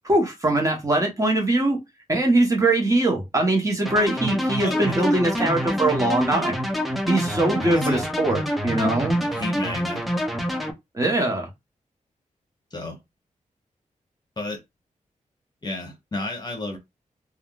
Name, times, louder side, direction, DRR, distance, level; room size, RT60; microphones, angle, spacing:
voice 1, 0.0-1.8 2.1-6.5 7.1-9.2 10.9-11.5, right 2 dB, 25° right, 1.0 m, -22 dB
sound 1, 3.9-10.7, equal, ahead, 0.5 m, -26 dB
voice 2, 4.6-5.0 7.7-8.0 9.3-10.0 12.7-13.0 14.4-14.6 15.6-16.8, left 2 dB, 30° left, 1.0 m, -31 dB
3.5 x 2.3 x 2.3 m
wide cardioid pair, 100°, 13 cm